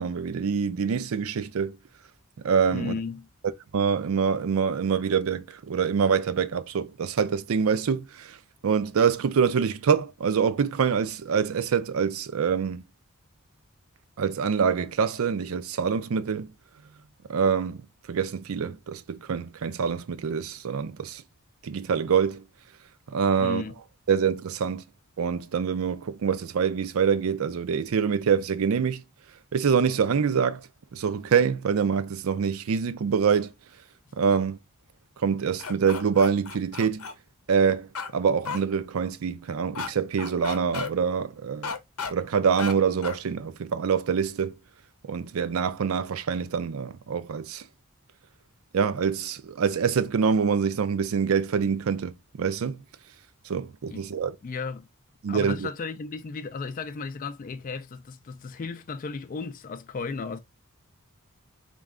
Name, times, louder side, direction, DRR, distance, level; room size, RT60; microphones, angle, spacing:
voice 1, 0.0-1.8 2.4-2.9 3.7-8.4 8.6-12.8 14.2-16.5 17.3-21.2 21.6-22.4 23.1-23.6 24.1-24.8 25.2-29.0 29.5-33.5 34.1-34.6 35.2-37.1 37.5-41.7 42.1-44.6 45.0-47.6 48.7-52.8 53.4-54.4 55.2-55.7, right 6 dB, 70° right, 0.4 m, -25 dB
voice 2, 2.7-3.3 23.4-23.7 53.9-54.1 54.4-54.9 55.3-60.4, left 4 dB, 40° left, 0.4 m, -34 dB
sound 1, 35.6-37.1 37.9-38.1 38.4-38.6 39.7-39.9 40.2-40.9 41.6-42.1 42.6-42.7 43.0-43.2, left 5 dB, 90° left, 0.7 m, -33 dB
4.1 x 2.3 x 3.6 m
head